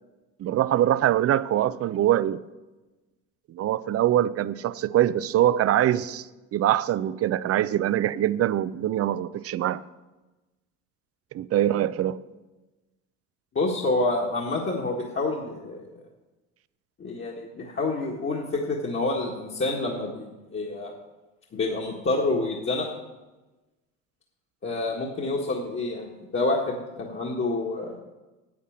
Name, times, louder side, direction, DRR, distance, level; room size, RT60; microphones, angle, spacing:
voice 1, 0.4-2.4 3.5-9.8 11.3-12.2, right 12 dB, 40° right, 0.5 m, -23 dB
voice 2, 13.5-15.8 17.0-20.9 21.5-22.9 24.6-27.9, left 2 dB, 30° left, 1.7 m, -28 dB
8.7 x 8.2 x 7.3 m
hypercardioid pair, 70°, 37 cm